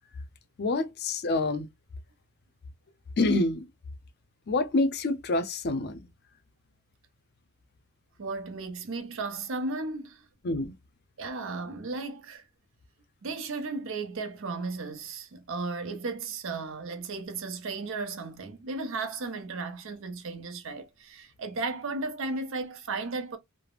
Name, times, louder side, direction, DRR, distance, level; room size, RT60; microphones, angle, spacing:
voice 1, 0.6-1.7 3.2-3.7 4.5-6.0 10.4-10.7, left 2 dB, 50° left, 0.5 m, -27 dB
voice 2, 8.2-10.3 11.2-12.4 13.2-23.4, right 3 dB, 65° right, 0.6 m, -35 dB
3.3 x 2.0 x 2.3 m
head